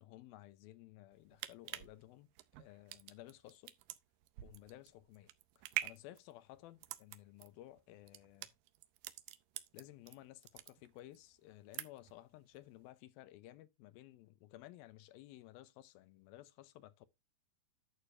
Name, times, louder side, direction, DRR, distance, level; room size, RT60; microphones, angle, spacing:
voice 1, 0.0-2.3 2.6-3.7 4.4-5.3 5.6-8.5 9.7-17.1, left 15 dB, 85° left, 2.6 m, -56 dB
sound 1, 1.1-10.2 10.4-11.2 11.5-12.2 12.5-12.7, right 15 dB, 80° right, 2.2 m, -45 dB
11.0 x 6.7 x 2.6 m
omnidirectional pair, 4.2 m